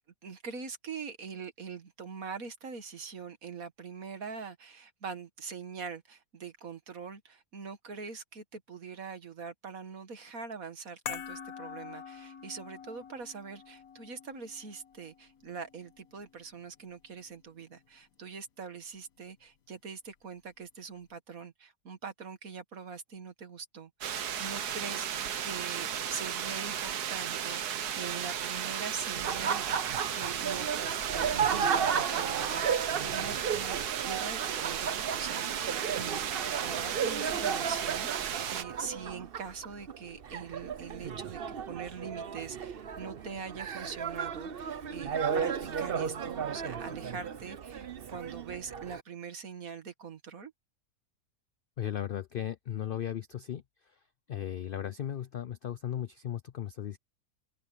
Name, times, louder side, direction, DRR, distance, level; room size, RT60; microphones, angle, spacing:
voice 1, 0.2-50.5, right 5 dB, 65° right, 2.2 m, -43 dB
sound 1, 11.1-17.5 17.7-17.9, left 7 dB, 65° left, 1.6 m, -46 dB
sound 2, 24.0-38.6, right 9 dB, 85° right, 1.6 m, -35 dB
Laughter, 29.1-49.0, right 7 dB, 45° right, 0.9 m, -34 dB
voice 2, 51.8-54.0 54.3-57.0, left 10 dB, 85° left, 0.4 m, -36 dB
open air
omnidirectional pair, 1.6 m